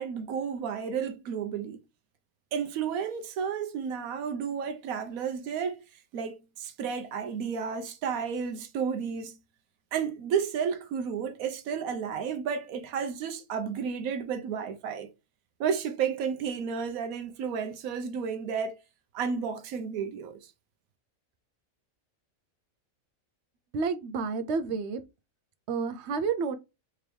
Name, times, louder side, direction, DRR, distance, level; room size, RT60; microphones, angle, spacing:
voice 1, 0.0-1.8 2.5-5.8 6.1-9.4 9.9-15.1 15.6-18.8 19.1-20.5, right 7 dB, 90° right, 1.1 m, -32 dB
voice 2, 23.7-25.0 25.7-26.6, right 5 dB, 65° right, 0.8 m, -30 dB
3.5 x 3.0 x 3.3 m
omnidirectional pair, 1.5 m